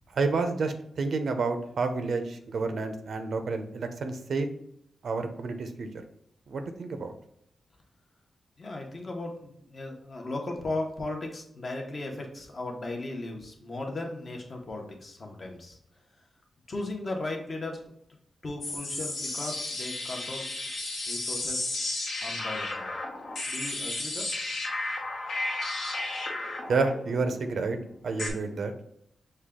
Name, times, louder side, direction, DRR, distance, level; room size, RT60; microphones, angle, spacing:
voice 1, 0.1-4.5 5.0-5.9 6.5-7.1 26.7-27.8 28.0-28.7, right 4 dB, 65° right, 7 dB, 0.5 m, -29 dB
voice 2, 8.6-15.8 16.7-17.9 18.4-20.5 21.1-21.7 22.2-22.9 23.5-24.3, left 2 dB, 40° left, 0 dB, 0.9 m, -36 dB
sound 1, 18.6-28.3, left 2 dB, 70° left, 1.1 m, -33 dB
6.3 x 2.3 x 3.6 m, 0.73 s
wide cardioid pair, 125°, 0 cm